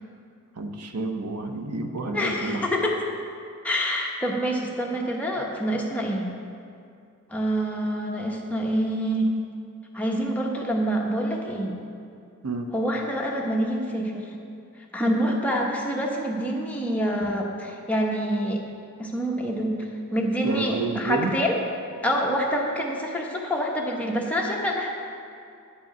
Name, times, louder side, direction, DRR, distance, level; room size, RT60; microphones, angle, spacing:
voice 1, 0.6-2.6 12.4-12.7 20.4-21.4, right 3 dB, 85° right, 5 dB, 0.8 m, -29 dB
voice 2, 2.1-3.0 3.6-6.3 7.3-9.3 9.9-11.7 12.7-14.2 14.9-18.6 19.0-19.7 20.1-21.6 22.0-24.9, equal, 5° left, -2 dB, 1.0 m, -26 dB
9.8 x 5.3 x 6.8 m, 2.4 s
head